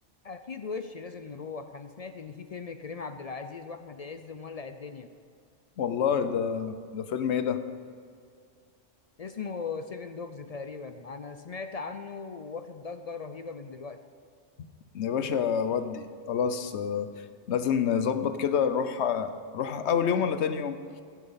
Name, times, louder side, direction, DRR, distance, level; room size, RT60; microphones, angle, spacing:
voice 1, 0.2-5.1 9.2-14.0, left 5 dB, 55° left, 9 dB, 0.4 m, -39 dB
voice 2, 5.8-7.6 14.9-20.8, left 7 dB, 70° left, 11 dB, 1.0 m, -28 dB
15.5 x 7.3 x 5.7 m, 2.2 s
omnidirectional pair, 1.2 m